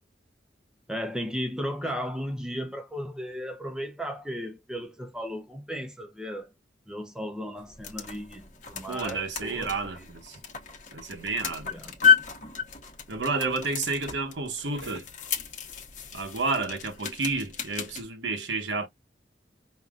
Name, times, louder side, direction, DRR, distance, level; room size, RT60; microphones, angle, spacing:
voice 1, 0.9-6.5 6.9-10.1 11.6-12.0, equal, 5° right, 0.7 m, -35 dB
sound 1, 7.6-18.0, left 7 dB, 45° left, 1.0 m, -31 dB
voice 2, 8.9-10.4 10.9-11.7 13.1-15.1 16.1-18.9, right 3 dB, 75° right, 1.0 m, -30 dB
5.3 x 2.7 x 2.4 m
head